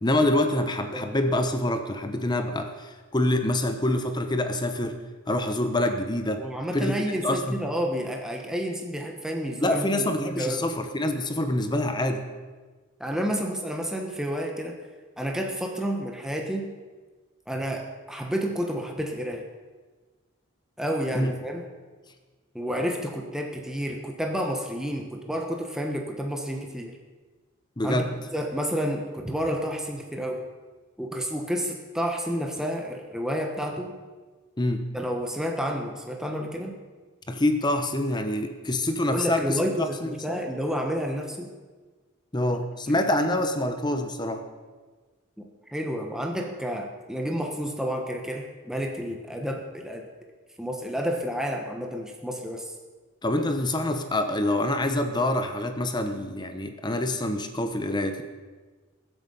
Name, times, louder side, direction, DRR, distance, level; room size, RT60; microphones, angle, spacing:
voice 1, 0.0-5.0 5.3-6.5 6.7-7.6 9.6-12.2 21.1-21.3 27.8-28.1 34.6-34.8 37.3-40.4 42.3-44.4 53.2-58.2, left 1 dB, 20° left, 7 dB, 0.9 m, -26 dB
voice 2, 6.4-10.7 13.0-14.8 15.2-16.7 17.5-19.4 20.8-21.6 22.5-27.0 27.8-30.4 31.0-33.9 34.9-36.8 39.1-41.5 42.9-43.3 45.4-50.1 50.6-52.7, equal, 5° right, 2 dB, 1.2 m, -30 dB
21.5 x 8.1 x 5.6 m, 1.3 s
head